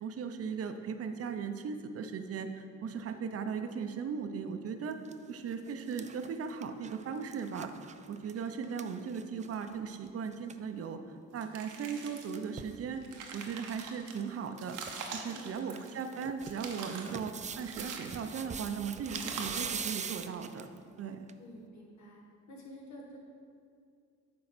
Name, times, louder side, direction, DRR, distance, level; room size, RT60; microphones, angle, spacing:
voice 1, 0.0-5.0 5.3-11.0 11.3-13.0 13.3-14.8 15.1-20.7 21.0-21.3, right 6 dB, 50° right, 7 dB, 0.7 m, -38 dB
sound 1, 4.9-5.1 5.5-9.8 10.1-10.2 10.3-10.6 11.9-12.8 13.4-13.9 14.1-14.2 14.6-15.2 15.6-20.8 21.3-21.4, right 6 dB, 25° right, 0.3 m, -43 dB
sound 2, 11.4-12.4 12.9-14.1 14.6-16.1 16.4-17.2 17.6-18.5 19.1-19.8, right 5 dB, 80° right, 1.0 m, -44 dB
voice 2, 15.3-15.6 21.4-22.2 22.5-23.2, equal, 65° left, -2 dB, 1.7 m, -49 dB
9.5 x 3.8 x 6.1 m, 2.3 s
cardioid pair, 90°, 30 cm